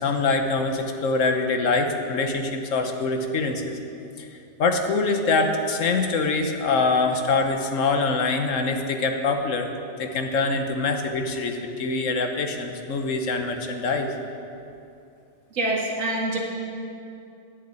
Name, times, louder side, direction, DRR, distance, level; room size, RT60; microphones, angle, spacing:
voice 1, 0.0-3.8 4.2-4.3 4.6-9.7 10.0-14.1, left 3 dB, 80° left, 5 dB, 1.3 m, -24 dB
voice 2, 15.5-16.4, right 2 dB, 75° right, -2 dB, 2.2 m, -25 dB
10.5 x 6.5 x 8.9 m, 2.6 s
omnidirectional pair, 1.3 m